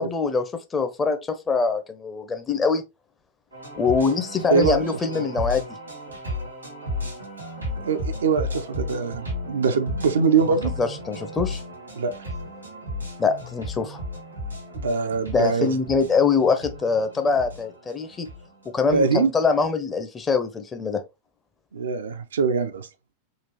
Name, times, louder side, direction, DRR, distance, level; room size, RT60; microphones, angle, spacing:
voice 1, 0.0-2.8 3.8-5.8 10.8-11.6 13.2-14.0 15.3-18.3 18.7-21.0, left 4 dB, 20° left, 0.6 m, -23 dB
sound 1, 3.5-19.7, left 1 dB, 85° right, 1.3 m, -34 dB
voice 2, 4.5-4.8 5.1-5.2 7.8-10.7 11.9-12.1 14.7-15.7 18.9-19.3 21.7-22.9, right 5 dB, 65° right, 0.4 m, -23 dB
3.8 x 2.4 x 3.0 m
figure-of-eight pair, 90°, 0 cm